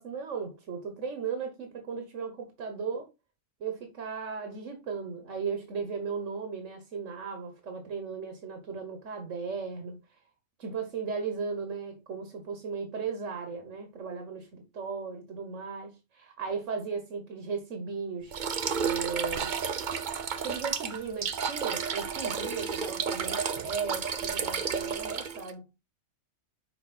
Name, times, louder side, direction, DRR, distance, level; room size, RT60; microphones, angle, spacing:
voice 1, 0.0-3.1 3.6-10.0 10.6-18.4 18.7-19.5 20.4-25.7, right 5 dB, 75° right, 1.6 m, -36 dB
sound 1, 18.3-25.5, right 6 dB, 45° right, 0.7 m, -32 dB
6.6 x 4.3 x 4.2 m
omnidirectional pair, 1.3 m